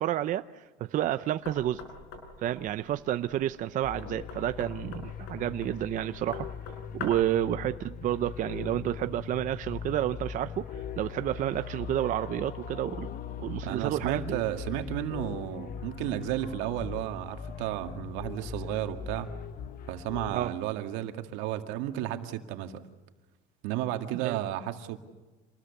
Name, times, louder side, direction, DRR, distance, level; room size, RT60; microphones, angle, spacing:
voice 1, 0.0-1.8 2.4-6.5 6.9-13.1 13.4-14.4 20.3-20.5 24.1-24.4, right 12 dB, 45° right, 11 dB, 0.7 m, -30 dB
Knock, 1.4-7.4, left 4 dB, 90° left, 6.4 m, -44 dB
sound 1, 3.8-20.3, left 7 dB, 50° left, 1.2 m, -40 dB
voice 2, 13.6-19.3 19.9-22.8 23.6-25.0, right 12 dB, 85° right, 6 dB, 2.1 m, -33 dB
27.0 x 20.0 x 7.1 m, 1.2 s
cardioid pair, 145°, 19 cm